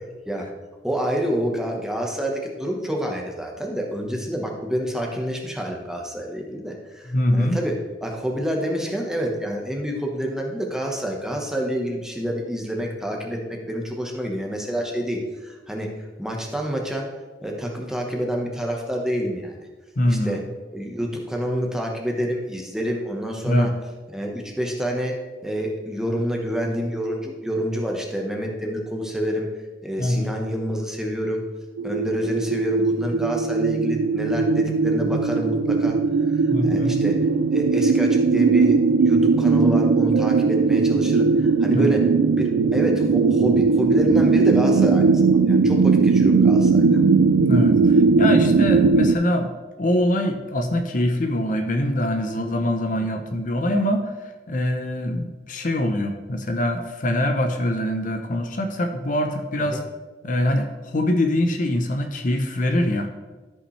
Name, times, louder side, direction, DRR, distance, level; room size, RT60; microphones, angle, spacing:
voice 1, 0.8-17.1 17.4-19.5 20.1-20.4 20.7-23.7 24.1-29.5 29.8-31.4 31.8-36.0 36.6-47.0 59.7-59.8, equal, 5° right, 0 dB, 1.1 m, -28 dB
voice 2, 7.1-7.6 20.0-20.4 23.4-23.7 30.0-30.3 36.5-37.0 41.7-41.9 47.4-49.5 49.8-59.8 60.2-63.1, left 1 dB, 50° left, 5 dB, 0.7 m, -23 dB
sound 1, 31.8-49.2, right 4 dB, 75° right, 0.4 m, -18 dB
13.0 x 5.6 x 3.2 m, 1.3 s
head